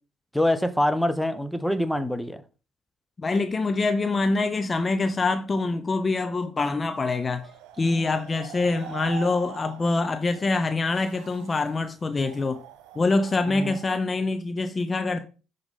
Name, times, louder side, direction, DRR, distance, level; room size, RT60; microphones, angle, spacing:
voice 1, 0.3-2.4 13.5-13.8, left 1 dB, ahead, 0.9 m, -25 dB
voice 2, 3.2-7.5 7.8-12.6 13.0-15.3, left 3 dB, 30° left, 0.7 m, -25 dB
sound 1, 6.9-14.0, right 11 dB, 70° right, 0.6 m, -44 dB
10.5 x 3.9 x 3.7 m
hypercardioid pair, 55°, 0 cm